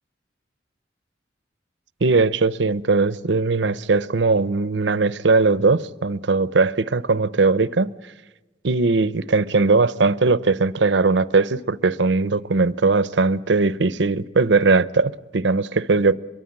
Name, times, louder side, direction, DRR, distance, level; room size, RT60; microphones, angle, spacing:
voice 1, 2.0-7.9 8.6-16.2, right 3 dB, 85° right, 0.7 m, -19 dB
24.5 x 22.5 x 8.8 m
head